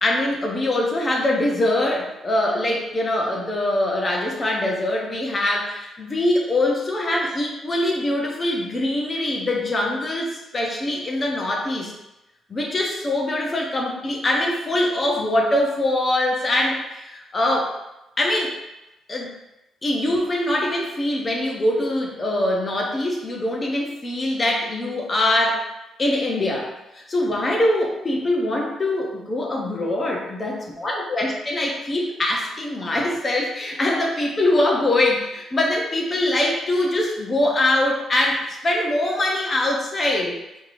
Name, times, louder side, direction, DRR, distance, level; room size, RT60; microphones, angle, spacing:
voice 1, 0.0-11.9 12.5-17.8 18.2-18.6 19.1-19.3 19.8-25.6 26.0-30.5 30.8-40.4, left 1 dB, 25° left, -1 dB, 0.6 m, -23 dB
4.6 x 2.8 x 2.6 m, 0.93 s
cardioid pair, 160°, 0 cm